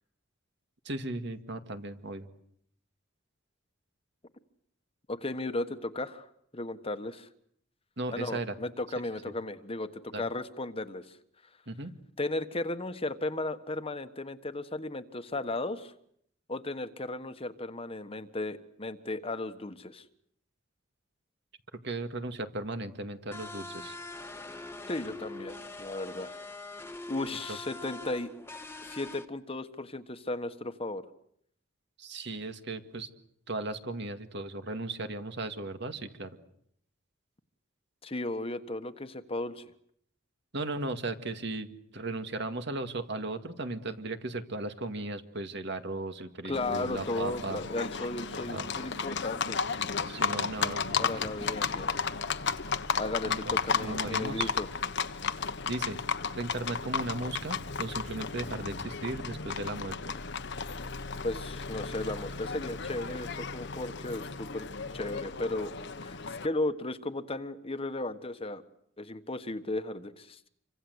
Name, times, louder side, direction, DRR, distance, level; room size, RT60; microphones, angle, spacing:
voice 1, 0.8-2.3 8.0-8.5 10.1-10.2 11.7-11.9 21.8-23.9 32.0-33.1 33.5-36.4 40.5-47.6 48.4-48.7 50.1-51.3 53.3-53.5 53.8-54.5 55.6-56.0 56.3-60.1, right 2 dB, 60° right, 8 dB, 2.2 m, -36 dB
voice 2, 5.1-6.3 6.5-7.3 8.1-11.1 12.2-15.9 16.5-20.0 24.9-26.4 27.1-28.3 28.8-31.0 38.0-39.6 46.4-49.6 51.0-51.9 53.0-54.7 61.2-64.7 64.9-65.7 66.0-68.6 69.0-70.5, left 2 dB, 30° left, 10 dB, 1.3 m, -35 dB
sound 1, 23.3-29.3, left 2 dB, 15° left, 1.6 m, -43 dB
Livestock farm animals working animals, 46.5-66.5, left 5 dB, 60° left, 1.2 m, -34 dB
28.0 x 25.0 x 8.0 m, 0.69 s
head